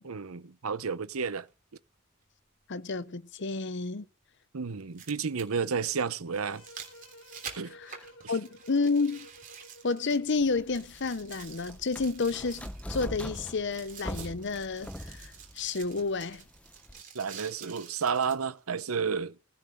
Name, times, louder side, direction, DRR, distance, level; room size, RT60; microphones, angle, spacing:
voice 1, 0.0-1.5 4.5-6.6 7.6-7.7 8.2-8.3 17.1-19.4, right 6 dB, 80° right, 0.8 m, -31 dB
sound 1, 1.5-1.6 3.5-3.6 4.7-10.4 10.7-18.4 19.0-19.1, right 7 dB, 40° right, 3.3 m, -48 dB
voice 2, 2.7-4.0 7.7-8.0 8.3-9.3 9.8-16.4, left 4 dB, 55° left, 0.8 m, -30 dB
sound 2, 6.4-10.7, equal, 80° left, 1.6 m, -54 dB
sound 3, 10.4-17.0, equal, 5° left, 0.7 m, -42 dB
16.0 x 5.8 x 7.8 m
head